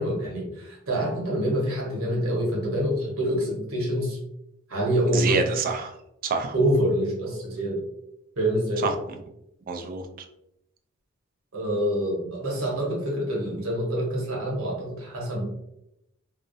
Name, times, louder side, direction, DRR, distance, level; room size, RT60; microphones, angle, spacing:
voice 1, 0.0-4.2 4.7-5.4 6.5-7.8 8.4-8.9 11.5-15.4, equal, 80° right, -3 dB, 0.9 m, -26 dB
voice 2, 5.1-5.9 6.2-6.5 8.8-9.2 9.7-10.3, right 4 dB, 45° right, 5 dB, 0.3 m, -27 dB
2.4 x 2.0 x 2.5 m, 0.82 s
head